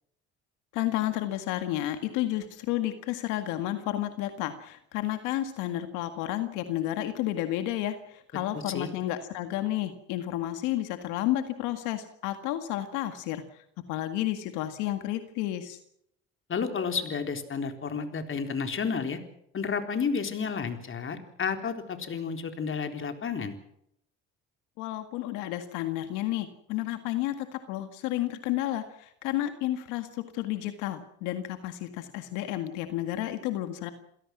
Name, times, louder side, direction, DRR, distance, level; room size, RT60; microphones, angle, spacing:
voice 1, 0.7-15.8 24.8-33.9, left 14 dB, 90° left, 8 dB, 1.9 m, -31 dB
voice 2, 8.5-8.9 16.5-19.2 19.5-23.5, left 5 dB, 45° left, 6 dB, 3.9 m, -31 dB
28.5 x 17.0 x 6.2 m, 0.73 s
supercardioid pair, 80°, 29 cm